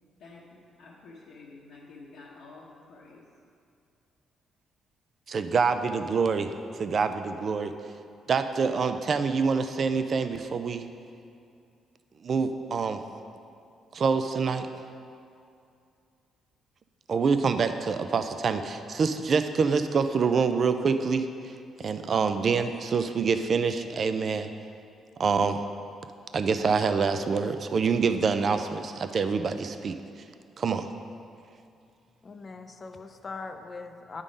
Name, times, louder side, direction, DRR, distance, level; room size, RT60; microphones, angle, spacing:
voice 1, 0.2-3.2, left 3 dB, 80° left, -7 dB, 1.0 m, -49 dB
voice 2, 5.3-7.7 8.3-10.9 12.2-13.0 13.9-14.7 17.1-21.5 21.8-24.5 25.2-25.6 26.3-30.0 30.6-30.9, right 5 dB, 50° right, 9 dB, 0.4 m, -26 dB
voice 3, 32.2-34.2, left 4 dB, 35° left, 7 dB, 0.5 m, -41 dB
9.8 x 3.7 x 5.1 m, 2.5 s
cardioid pair, 90°, 0 cm